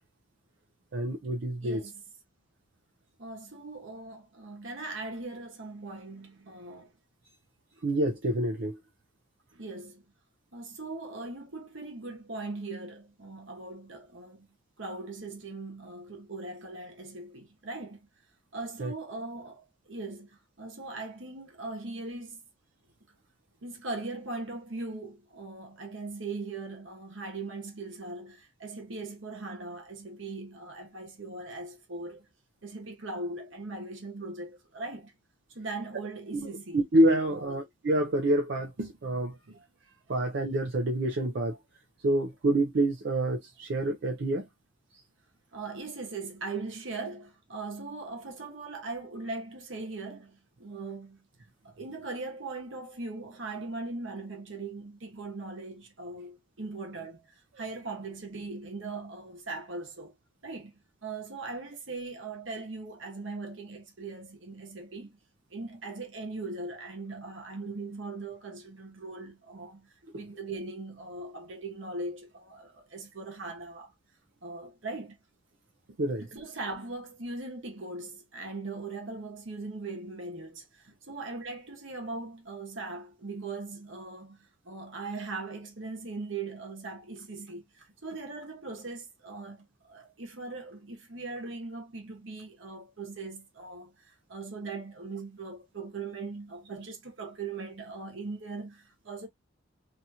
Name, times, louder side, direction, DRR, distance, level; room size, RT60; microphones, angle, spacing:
voice 1, 0.9-1.8 7.8-8.8 18.8-18.9 36.7-39.4 40.1-41.6 42.0-44.5 70.1-70.2 76.0-76.2, right 1 dB, 60° right, 0.5 m, -27 dB
voice 2, 1.6-2.0 3.2-6.9 9.5-10.0 10.5-18.1 18.5-22.4 23.6-32.2 32.6-35.1 35.5-36.8 37.3-37.6 39.5-40.3 45.5-51.3 51.6-57.2 57.6-60.1 60.4-60.7 61.0-65.2 65.5-73.9 74.4-75.2 76.3-99.3, right 3 dB, 75° right, 1.1 m, -40 dB
2.8 x 2.4 x 2.7 m
head